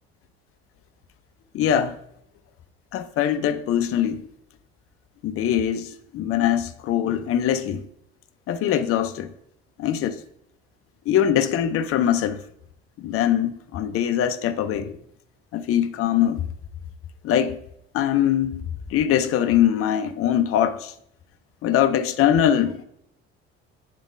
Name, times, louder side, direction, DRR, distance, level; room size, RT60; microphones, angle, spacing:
voice 1, 1.5-2.0 2.9-4.2 5.2-7.8 8.5-9.3 9.8-10.2 11.1-12.4 13.0-15.0 15.5-16.4 17.2-17.6 17.9-18.6 18.9-20.9 21.6-22.8, left 10 dB, 45° left, 0.5 m, -22 dB
8.2 x 3.5 x 3.6 m
hypercardioid pair, 60°, 32 cm